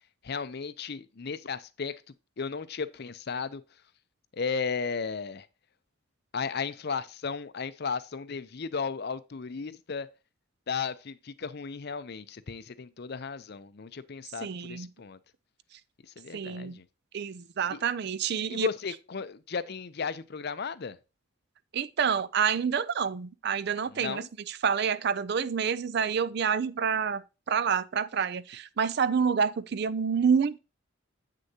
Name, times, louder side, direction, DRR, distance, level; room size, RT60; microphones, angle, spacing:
voice 1, 0.2-2.0 2.4-3.6 4.3-5.5 6.3-10.1 10.7-15.2 16.0-16.9 17.7-17.8 18.5-21.0 23.9-24.3, left 5 dB, 50° left, 0.5 m, -35 dB
voice 2, 14.4-14.9 16.3-16.8 17.1-18.7 21.7-27.2 27.5-30.6, right 6 dB, 50° right, 0.4 m, -28 dB
8.3 x 6.5 x 2.8 m
head